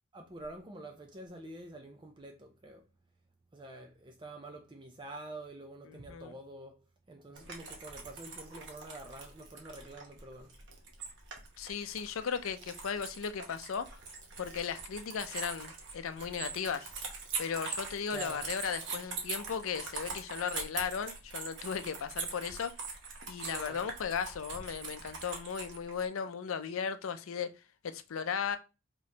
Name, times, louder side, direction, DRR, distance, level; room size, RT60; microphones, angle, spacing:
voice 1, 0.1-2.8 3.5-10.6 18.1-18.5 23.4-23.9, right 2 dB, 25° right, 0.5 m, -47 dB
voice 2, 5.9-6.3 11.6-14.0 14.4-16.9 17.4-22.7 23.3-27.5 27.8-28.6, left 6 dB, 85° left, 0.5 m, -36 dB
sound 1, 7.3-26.1, right 4 dB, 60° right, 1.0 m, -43 dB
5.1 x 3.0 x 2.8 m
head